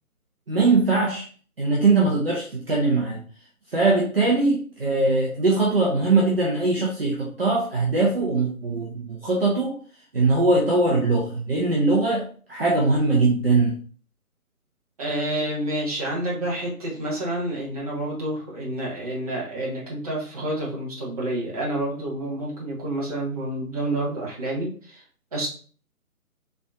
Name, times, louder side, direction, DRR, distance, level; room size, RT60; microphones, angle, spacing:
voice 1, 0.5-1.2 1.6-3.2 3.7-9.8 10.1-13.7, right 3 dB, 40° right, -3 dB, 1.1 m, -21 dB
voice 2, 15.0-25.0 25.3-25.5, right 1 dB, 25° right, -4 dB, 1.4 m, -29 dB
6.0 x 3.6 x 2.5 m, 0.42 s
figure-of-eight pair, 150°, 44 cm